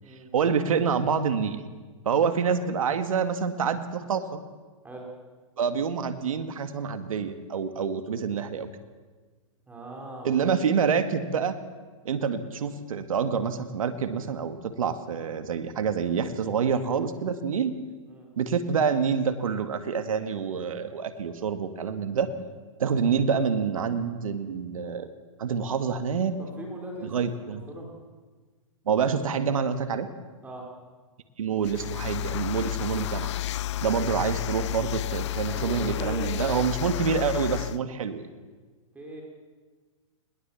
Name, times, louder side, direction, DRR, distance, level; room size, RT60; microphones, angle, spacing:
voice 1, 0.3-1.6 2.1-4.4 5.6-8.7 10.2-11.6 12.1-17.8 18.4-22.3 22.8-25.1 25.4-26.4 27.1-27.6 28.9-30.1 31.4-33.3 33.8-38.3, right 6 dB, 80° right, 8 dB, 1.9 m, -27 dB
voice 2, 9.7-10.4 18.1-18.3 26.4-27.1 27.5-27.9 30.4-30.7 35.5-37.1 38.9-39.2, right 1 dB, 10° right, -1 dB, 4.4 m, -40 dB
sound 1, 31.6-37.8, left 12 dB, 55° left, 0.5 m, -31 dB
21.0 x 19.0 x 7.2 m, 1.4 s
hypercardioid pair, 140°, 17 cm